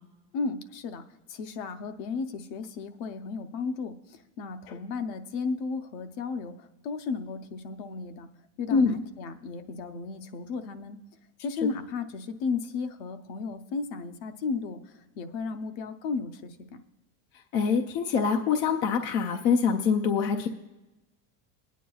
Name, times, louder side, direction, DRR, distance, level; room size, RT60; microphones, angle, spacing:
voice 1, 0.3-1.0 1.3-8.3 8.6-11.0 11.4-16.8, left 4 dB, 50° left, 9 dB, 0.7 m, -34 dB
voice 2, 17.5-20.5, left 6 dB, 30° left, 3 dB, 0.3 m, -24 dB
21.0 x 9.3 x 2.3 m, 1.0 s
cardioid pair, 175°, 40 cm